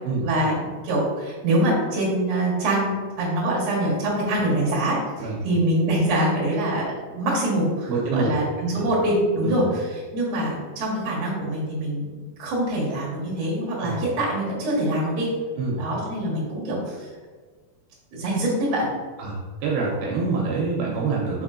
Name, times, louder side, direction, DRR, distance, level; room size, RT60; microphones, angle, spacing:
voice 1, 0.2-12.0 12.4-15.3 15.8-16.8 18.1-18.9, right 1 dB, 55° right, -6 dB, 2.2 m, -24 dB
voice 2, 7.9-8.4 8.7-8.9 9.4-9.6 13.8-14.0 15.6-15.8 19.2-21.4, right 4 dB, 80° right, -3 dB, 2.4 m, -26 dB
6.1 x 3.5 x 2.5 m, 1.4 s
omnidirectional pair, 4.4 m